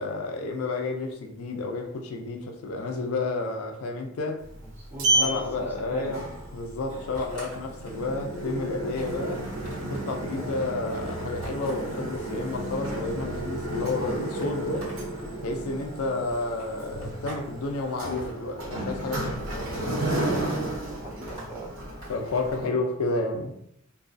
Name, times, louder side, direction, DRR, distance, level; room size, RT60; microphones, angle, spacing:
voice 1, 0.0-4.4 5.2-6.2 6.5-9.4 9.9-14.9 15.4-19.8 22.1-23.5, left 3 dB, 85° left, 0.4 m, -31 dB
Sliding door, 4.4-22.7, right 1 dB, 75° right, 0.7 m, -32 dB
voice 2, 4.6-6.1 16.1-16.2 20.9-21.8 22.5-22.7, right 2 dB, 10° right, 0.5 m, -41 dB
sound 1, 7.1-8.1 8.5-8.6 8.9-10.1 11.4-12.0 12.6-13.2 13.9-15.3 16.3-17.5 17.7-18.3 19.3-19.8 20.1-20.6 21.3-22.4, right 1 dB, 25° left, 1.2 m, -45 dB
2.3 x 2.2 x 2.5 m
head